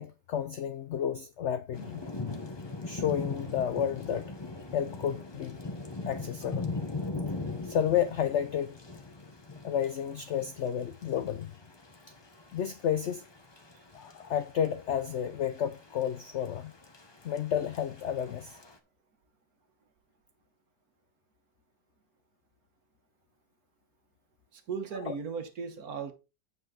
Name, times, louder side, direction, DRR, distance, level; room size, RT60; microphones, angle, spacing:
voice 1, 0.0-2.0 2.9-4.3 4.7-5.6 6.0-6.7 7.6-8.8 9.6-11.5 12.5-13.2 13.9-16.7 17.2-18.6 25.1-25.2, left 9 dB, 75° left, 0.6 m, -31 dB
Thunder / Rain, 1.7-18.8, left 3 dB, 25° left, 0.6 m, -41 dB
voice 2, 24.5-26.1, right 6 dB, 60° right, 1.6 m, -37 dB
9.2 x 5.3 x 3.7 m
omnidirectional pair, 1.8 m